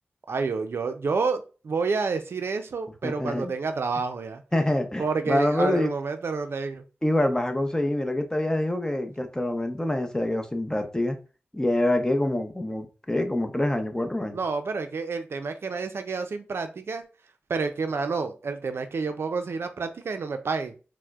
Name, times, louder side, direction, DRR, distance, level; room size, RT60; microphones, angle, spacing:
voice 1, 0.3-4.4 5.0-6.8 14.3-17.0 17.5-20.7, right 4 dB, 75° right, 0.4 m, -29 dB
voice 2, 3.0-3.5 4.5-5.9 7.0-11.2 11.5-14.4, left 1 dB, 15° left, 0.6 m, -26 dB
4.4 x 2.0 x 2.3 m
cardioid pair, 45°, 4 cm